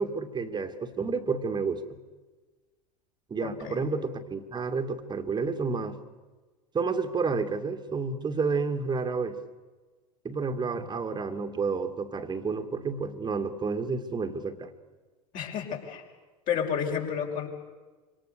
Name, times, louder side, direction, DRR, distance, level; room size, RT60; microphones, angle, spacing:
voice 1, 0.0-1.8 3.3-6.0 6.7-9.4 10.2-14.7, right 4 dB, 20° right, 8 dB, 2.5 m, -30 dB
voice 2, 3.4-3.9 15.3-16.0 16.5-17.5, left 7 dB, 45° left, 1 dB, 5.9 m, -31 dB
26.5 x 25.5 x 6.9 m, 1.3 s
figure-of-eight pair, 80°, 20 cm